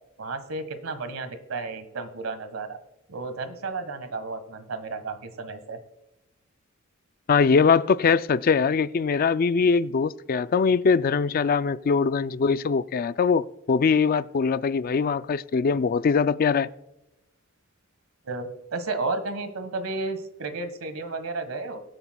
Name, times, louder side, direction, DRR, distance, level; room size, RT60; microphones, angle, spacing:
voice 1, 0.2-2.8 3.1-5.8 18.2-21.8, right 3 dB, 90° right, 1.5 m, -32 dB
voice 2, 7.3-16.7, left 5 dB, 45° left, 0.3 m, -22 dB
22.5 x 8.1 x 2.3 m
head